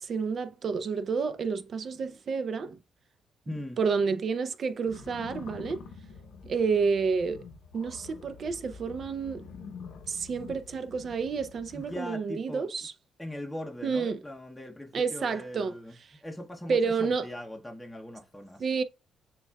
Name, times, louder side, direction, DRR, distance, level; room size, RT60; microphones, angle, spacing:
voice 1, 0.0-2.8 3.5-5.8 6.4-7.4 7.7-9.5 10.1-12.9 13.8-14.2 14.9-15.7 16.1-16.2 16.7-17.3 18.6-18.8, right 5 dB, 50° right, 0.5 m, -30 dB
voice 2, 3.5-3.8 11.7-12.7 13.2-18.6, left 1 dB, 5° left, 0.7 m, -40 dB
sound 1, 4.8-12.0, left 5 dB, 85° left, 0.8 m, -47 dB
6.9 x 2.3 x 2.3 m
cardioid pair, 90°, 0 cm